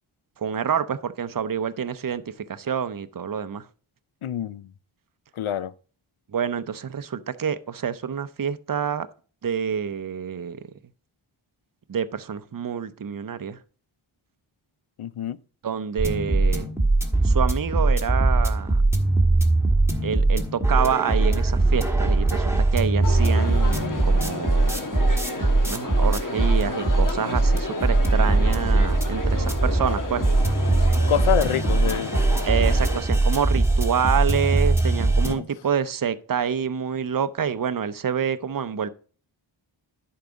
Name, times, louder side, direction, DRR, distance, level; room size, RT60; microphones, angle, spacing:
voice 1, 0.4-2.2 2.5-3.6 6.3-9.1 9.4-10.6 11.9-13.6 15.6-16.7 17.2-18.8 20.0-24.7 25.7-30.2 32.4-38.9, right 7 dB, 45° right, 0.6 m, -27 dB
voice 2, 4.2-4.6 5.4-5.7 15.0-15.4 31.1-32.1 35.3-35.4, left 10 dB, 85° left, 0.6 m, -26 dB
sound 1, 16.0-35.3, right 2 dB, 5° right, 1.5 m, -21 dB
Crowd, 23.0-33.0, left 2 dB, 40° left, 1.3 m, -32 dB
10.5 x 4.8 x 5.0 m
wide cardioid pair, 85°, 49 cm